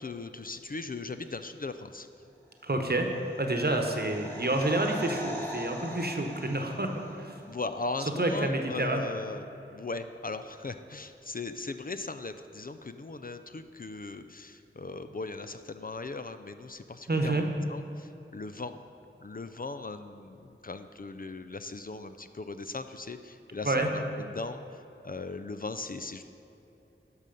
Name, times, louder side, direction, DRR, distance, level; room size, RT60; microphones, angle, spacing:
voice 1, 0.0-2.1 7.5-17.4 17.7-18.8 19.2-26.2, left 3 dB, 45° left, 9 dB, 0.4 m, -38 dB
voice 2, 2.6-3.1 3.4-6.9 7.2-7.3 8.2-9.1 17.1-17.4 23.6-23.9, right 2 dB, 50° right, 3 dB, 1.0 m, -28 dB
sound 1, 2.8-7.6 7.9-8.0, equal, 10° left, 1.7 m, -42 dB
11.0 x 6.4 x 5.2 m, 2.9 s
wide cardioid pair, 45°, 21 cm